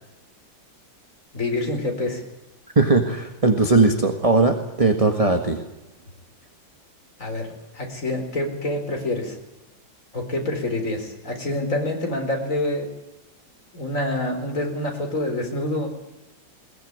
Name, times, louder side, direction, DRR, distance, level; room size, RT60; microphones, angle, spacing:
voice 1, 1.3-2.2 7.2-7.5 7.7-9.4 10.1-12.9 13.7-15.9, left 1 dB, 40° left, 3 dB, 4.7 m, -26 dB
voice 2, 2.7-5.6, right 3 dB, 20° right, 5 dB, 1.6 m, -19 dB
21.5 x 19.0 x 9.4 m, 0.97 s
omnidirectional pair, 2.1 m